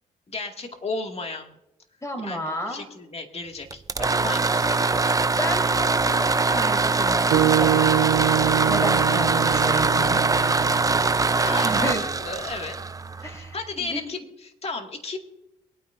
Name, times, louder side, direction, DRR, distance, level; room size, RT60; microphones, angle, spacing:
voice 1, 0.3-1.6 2.2-5.2 11.3-11.9 12.2-12.8 13.2-15.2, left 3 dB, 40° left, 4 dB, 2.2 m, -34 dB
voice 2, 2.0-2.9 5.2-7.8 8.6-10.2 11.6-12.0 13.2-14.0, equal, 20° left, 4 dB, 4.0 m, -32 dB
sound 1, 3.7-13.5, right 3 dB, 20° right, 0.7 m, -22 dB
sound 2, 7.3-11.6, right 12 dB, 85° right, 0.8 m, -25 dB
23.0 x 9.3 x 2.6 m, 0.86 s
supercardioid pair, 60°, 17 cm